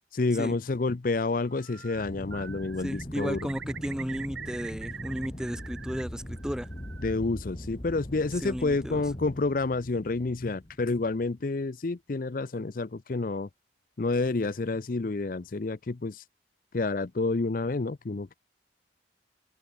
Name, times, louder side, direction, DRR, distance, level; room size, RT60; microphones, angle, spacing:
voice 1, 0.1-3.5 7.0-13.5 14.0-16.2 16.7-18.4, left 3 dB, 50° left, 0.5 m, -29 dB
Bird, 1.5-2.1 2.3-6.0 6.3-7.2, right 7 dB, 80° right, 1.6 m, -44 dB
Aircraft, 1.9-11.4, equal, 30° left, 3.3 m, -41 dB
voice 2, 2.8-6.7 8.4-9.0, equal, 5° right, 2.1 m, -34 dB
open air
head